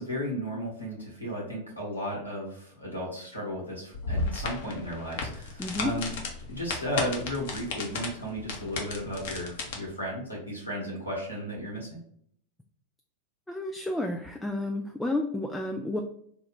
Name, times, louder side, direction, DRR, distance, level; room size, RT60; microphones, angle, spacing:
voice 1, 0.0-6.1 6.5-12.0, equal, 90° left, -5 dB, 1.4 m, -34 dB
sound 1, 3.9-9.7, left 3 dB, 55° left, 0.7 m, -34 dB
voice 2, 5.6-5.9 13.5-16.0, left 2 dB, 5° left, 3 dB, 0.3 m, -31 dB
3.6 x 2.3 x 3.4 m, 0.66 s
figure-of-eight pair, 90°, 0 cm